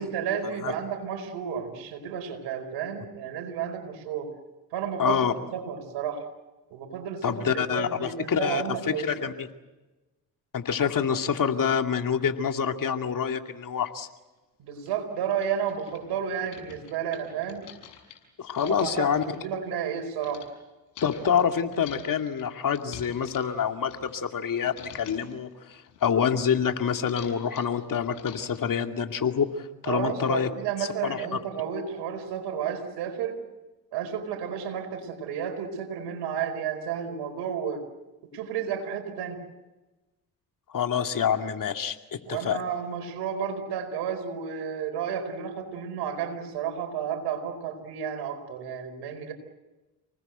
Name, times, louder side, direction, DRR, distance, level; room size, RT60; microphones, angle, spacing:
voice 1, 0.0-4.3 4.7-6.3 6.7-9.1 14.6-17.6 18.6-20.5 29.9-33.4 33.9-37.8 38.3-39.4 42.3-49.3, right 8 dB, 75° right, 7 dB, 4.7 m, -32 dB
voice 2, 5.0-5.3 7.2-9.5 10.5-14.1 18.4-19.2 21.0-30.5 31.0-31.3 40.7-42.6, left 7 dB, 50° left, 5 dB, 2.4 m, -27 dB
sound 1, 14.2-14.3 14.9-15.0 15.2-20.5 20.9-24.4 24.6-25.3 25.7-28.7, left 9 dB, 80° left, 6.7 m, -47 dB
30.0 x 19.5 x 8.0 m, 1.1 s
hypercardioid pair, 50°, 41 cm